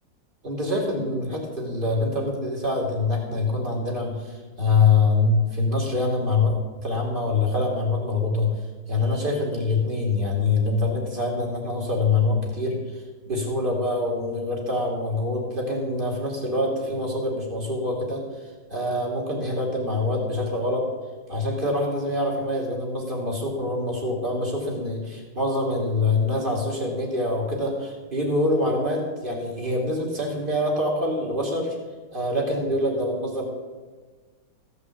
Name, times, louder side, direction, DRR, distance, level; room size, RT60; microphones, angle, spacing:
voice 1, 0.4-6.5 6.8-8.5 8.9-12.8 13.2-18.2 18.7-20.9 21.3-31.7 32.1-33.5, left 2 dB, 25° right, -1 dB, 2.8 m, -25 dB
15.5 x 5.4 x 8.3 m, 1.4 s
omnidirectional pair, 2.2 m